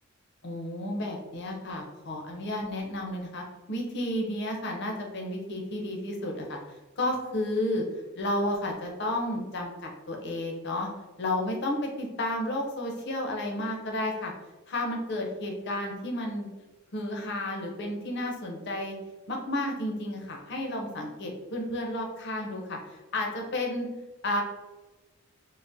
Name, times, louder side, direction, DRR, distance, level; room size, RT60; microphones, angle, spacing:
voice 1, 0.4-7.8 8.2-10.9 11.2-14.3 14.7-16.5 16.9-18.9 19.3-22.8 23.1-23.9 24.2-24.4, left 1 dB, 55° left, 1 dB, 0.6 m, -32 dB
3.4 x 2.0 x 2.6 m, 1.2 s
head